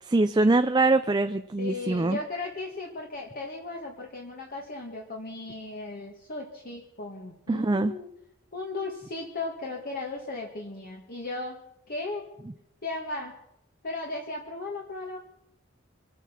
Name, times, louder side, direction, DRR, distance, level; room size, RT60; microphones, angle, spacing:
voice 1, 0.1-2.2 7.5-7.9, right 2 dB, 20° right, 9 dB, 0.5 m, -23 dB
voice 2, 1.6-8.1 8.5-11.6 11.9-12.3 12.8-13.3 13.8-15.2, left 2 dB, 50° left, 0 dB, 2.0 m, -36 dB
25.5 x 9.1 x 6.1 m, 0.77 s
head